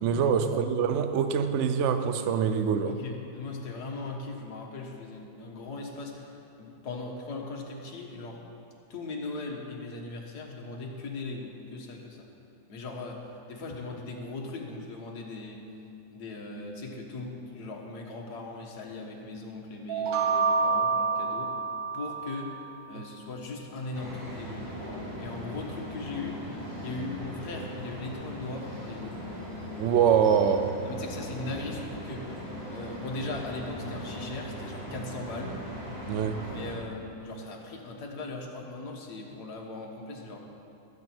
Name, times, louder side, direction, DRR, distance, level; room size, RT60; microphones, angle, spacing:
voice 1, 0.0-3.0 22.9-23.0 29.8-30.8 36.1-36.4, right 7 dB, 65° right, 9 dB, 0.7 m, -24 dB
voice 2, 2.8-8.4 8.9-12.3 12.7-15.6 16.1-21.6 21.9-22.5 22.9-24.7 25.2-26.4 26.8-29.2 30.9-32.3 32.7-35.6 36.5-40.4, left 3 dB, 60° left, 0 dB, 1.9 m, -39 dB
sound 1, 19.9-22.7, right 5 dB, 85° right, 2.1 m, -28 dB
sound 2, 23.9-36.8, equal, 15° right, 2.6 m, -39 dB
19.5 x 8.5 x 4.6 m, 2.7 s
omnidirectional pair, 2.0 m